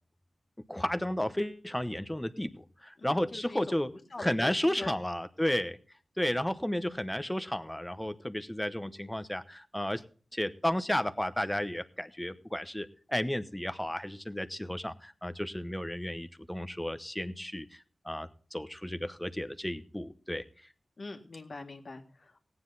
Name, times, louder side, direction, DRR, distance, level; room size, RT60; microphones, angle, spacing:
voice 1, 0.7-3.9 4.2-5.8 6.2-10.0 10.3-20.4, left 1 dB, 10° left, 12 dB, 0.9 m, -33 dB
voice 2, 3.0-3.8 4.1-4.9 21.0-22.4, left 3 dB, 50° left, 4 dB, 1.8 m, -44 dB
17.5 x 9.6 x 4.0 m, 0.40 s
wide cardioid pair, 110°, 0 cm